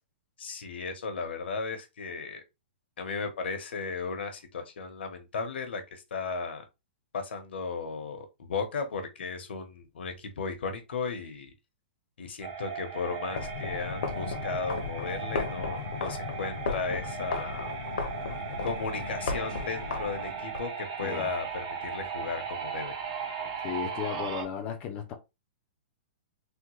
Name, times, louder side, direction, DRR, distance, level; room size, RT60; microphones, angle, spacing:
voice 1, 0.4-2.4 3.0-6.6 7.1-11.5 12.2-17.7 18.6-22.9, left 4 dB, 80° left, 1.0 m, -35 dB
sound 1, 12.4-24.4, right 6 dB, 35° right, 0.9 m, -37 dB
sound 2, 13.3-20.6, left 5 dB, 55° left, 0.7 m, -35 dB
voice 2, 21.0-21.3 23.6-25.1, left 8 dB, 20° left, 0.4 m, -35 dB
3.6 x 2.1 x 3.0 m
hypercardioid pair, 175°, 6 cm